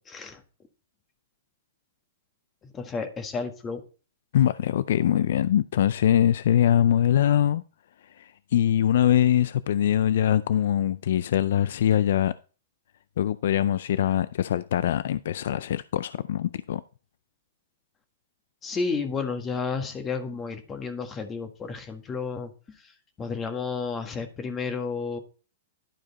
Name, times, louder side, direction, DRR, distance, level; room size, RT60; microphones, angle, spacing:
voice 1, 0.1-0.4 2.7-3.8 18.6-22.5 23.2-25.2, left 4 dB, 20° left, 1.6 m, -31 dB
voice 2, 4.3-7.6 8.2-12.3 13.2-16.8, left 10 dB, 65° left, 0.4 m, -23 dB
11.5 x 4.9 x 4.1 m
hypercardioid pair, 125°, 0 cm